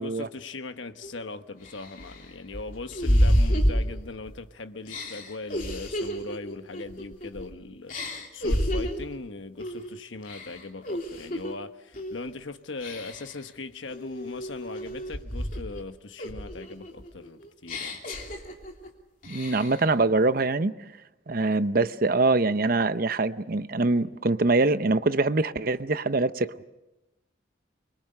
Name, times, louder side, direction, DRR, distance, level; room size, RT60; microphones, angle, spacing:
voice 1, 0.0-18.0, left 3 dB, 80° left, 1.1 m, -39 dB
sound 1, 1.0-1.1 1.6-4.4 4.9-7.5 7.9-9.1 9.6-9.9 10.2-11.5 11.9-12.3 12.8-13.4 13.9-15.8 16.2-18.9 19.2-19.9, equal, 45° left, 3.1 m, -29 dB
voice 2, 19.3-20.7 21.3-26.6, right 3 dB, 50° right, 0.7 m, -24 dB
25.0 x 23.0 x 6.6 m
head